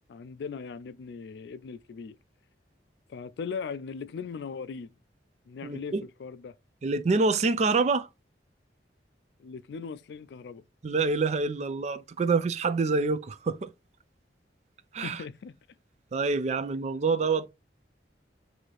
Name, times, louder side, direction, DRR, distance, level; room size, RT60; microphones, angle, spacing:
voice 1, 0.1-2.2 3.1-4.9 5.5-6.5 9.4-10.6 15.0-15.6, left 5 dB, 65° left, 0.3 m, -39 dB
voice 2, 5.6-6.0 6.8-8.1 10.8-13.7 14.9-15.2 16.1-17.5, right 4 dB, 40° right, 0.4 m, -26 dB
3.1 x 2.7 x 4.0 m
head